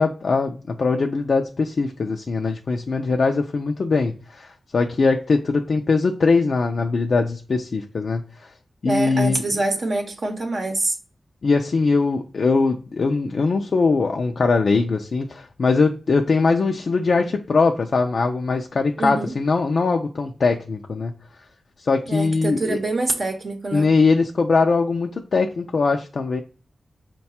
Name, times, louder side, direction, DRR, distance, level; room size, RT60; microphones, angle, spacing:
voice 1, 0.0-8.5 8.8-9.4 11.4-21.1 21.8-22.8 23.7-26.4, left 4 dB, 65° left, 0.3 m, -21 dB
voice 2, 8.8-11.0 19.0-19.3 22.1-23.9, right 2 dB, 60° right, 0.7 m, -25 dB
4.6 x 2.2 x 4.2 m
wide cardioid pair, 85°, 0 cm